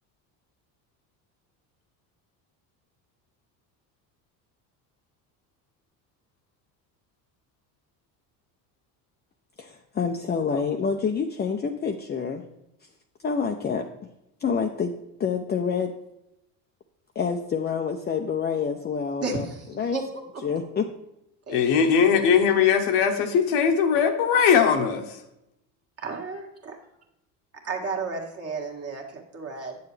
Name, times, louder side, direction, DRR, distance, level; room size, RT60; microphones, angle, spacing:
voice 1, 9.6-12.4 13.2-13.9 14.4-15.9 17.2-19.5 19.8-20.0 20.4-20.9, left 6 dB, 25° left, 3 dB, 0.6 m, -27 dB
voice 2, 19.2-19.7 19.9-20.0 20.3-20.4 21.5-22.4 26.0-26.8 27.6-29.8, right 4 dB, 35° right, 1 dB, 1.8 m, -33 dB
voice 3, 21.5-25.2, left 7 dB, 70° left, 5 dB, 1.1 m, -20 dB
8.4 x 6.9 x 3.3 m, 0.86 s
supercardioid pair, 90°, 40 cm